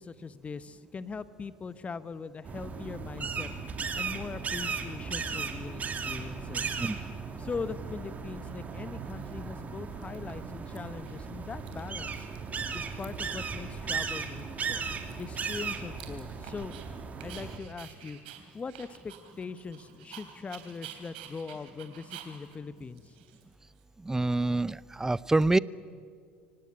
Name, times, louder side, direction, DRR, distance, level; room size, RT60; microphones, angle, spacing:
voice 1, 0.0-6.7 7.4-12.3 12.7-14.8 15.2-16.7 17.2-18.2 18.5-23.1, left 5 dB, 25° left, 14 dB, 1.0 m, -41 dB
sound 1, 2.5-17.6, right 5 dB, 30° right, 2.5 m, -36 dB
Dog, 8.5-8.6 9.2-9.7 10.0-10.8 11.1-11.2 11.4-12.5 12.8-13.4 13.8-13.9 14.2-16.9 17.2-23.8, right 10 dB, 75° right, 3.2 m, -50 dB
voice 2, 24.0-25.6, right 2 dB, 10° right, 21 dB, 0.5 m, -26 dB
24.5 x 18.0 x 8.8 m, 2.2 s
hypercardioid pair, 75°, 5 cm